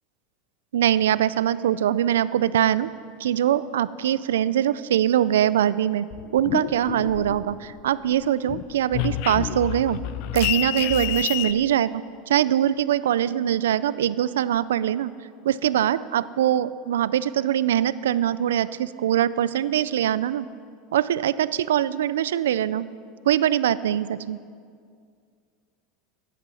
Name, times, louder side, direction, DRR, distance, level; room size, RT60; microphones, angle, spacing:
voice 1, 0.7-2.9 3.2-6.1 6.3-10.0 10.3-15.1 15.4-20.5 20.9-22.9 23.3-24.4, right 11 dB, 90° right, 17 dB, 0.4 m, -23 dB
sound 1, 6.1-7.8 8.1-11.5, left 14 dB, 65° left, 0.5 m, -29 dB
13.5 x 11.0 x 5.6 m, 2.2 s
supercardioid pair, 110°, 0 cm